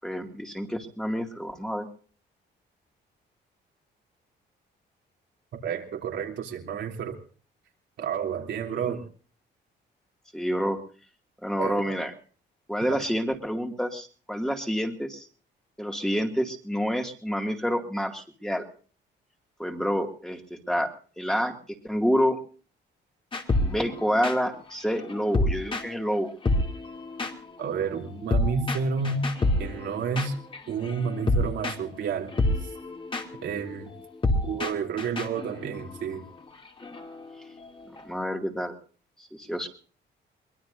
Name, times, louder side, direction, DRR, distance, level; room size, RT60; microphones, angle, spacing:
voice 1, 0.0-1.9 8.8-9.0 10.3-10.8 11.4-12.1 12.7-15.3 15.8-18.6 19.6-20.9 21.2-21.5 21.8-22.4 23.6-26.3 38.0-38.7 39.2-39.7, equal, 5° left, 3 dB, 2.3 m, -28 dB
voice 2, 5.6-7.2 8.0-9.0 11.6-11.8 12.8-13.0 27.6-29.3 29.6-30.4 30.7-32.3 32.6-32.7 33.4-33.9 34.4-36.2, right 6 dB, 75° right, 2 dB, 3.3 m, -30 dB
sound 1, 23.3-26.2 26.4-38.1, left 2 dB, 25° left, 2.6 m, -29 dB
23.5 x 21.0 x 2.7 m, 0.41 s
cardioid pair, 125°, 19 cm